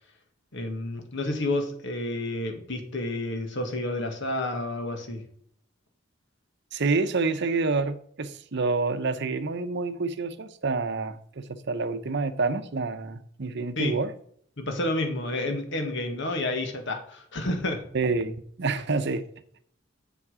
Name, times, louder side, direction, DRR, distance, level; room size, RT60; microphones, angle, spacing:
voice 1, 0.5-5.2 13.8-14.0 14.6-17.8, left 1 dB, 65° left, 1.8 m, -30 dB
voice 2, 6.7-14.1 17.9-19.2, right 3 dB, 60° right, 0.8 m, -28 dB
7.3 x 7.2 x 5.0 m
head